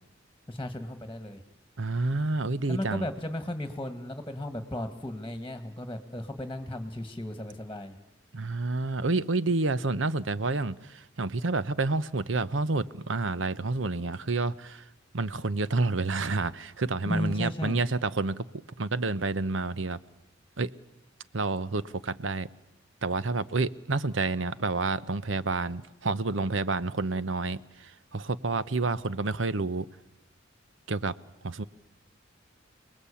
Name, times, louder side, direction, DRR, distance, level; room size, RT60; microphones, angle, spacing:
voice 1, 0.5-1.4 2.7-8.0 17.1-17.8, left 1 dB, 10° left, 9 dB, 1.8 m, -35 dB
voice 2, 1.8-3.1 8.3-14.8 15.1-18.5 18.8-20.0 20.6-20.7 21.3-22.5 23.0-29.9 30.9-31.1 31.4-31.6, right 3 dB, 75° right, 16 dB, 0.9 m, -29 dB
29.5 x 20.0 x 8.5 m, 0.99 s
head